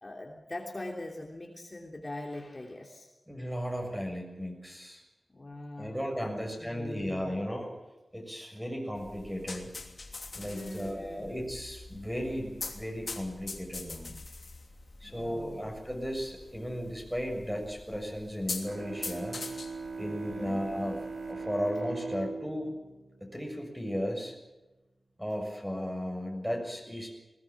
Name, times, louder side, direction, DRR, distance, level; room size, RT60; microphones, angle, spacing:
voice 1, 0.0-3.1 5.3-7.4 10.4-11.3 15.0-15.7 20.0-20.7, left 1 dB, 30° left, 0 dB, 3.2 m, -42 dB
voice 2, 3.3-5.0 5.8-7.7 8.1-9.7 10.3-14.2 15.0-19.4 20.0-21.0 21.3-22.7 23.2-24.3 25.2-27.1, equal, ahead, 2 dB, 6.7 m, -35 dB
sound 1, 9.0-21.4, left 3 dB, 60° left, 3.1 m, -44 dB
Bowed string instrument, 18.6-24.2, right 4 dB, 70° right, 2.6 m, -41 dB
21.0 x 19.5 x 7.4 m, 1.1 s
wide cardioid pair, 95°, 0 cm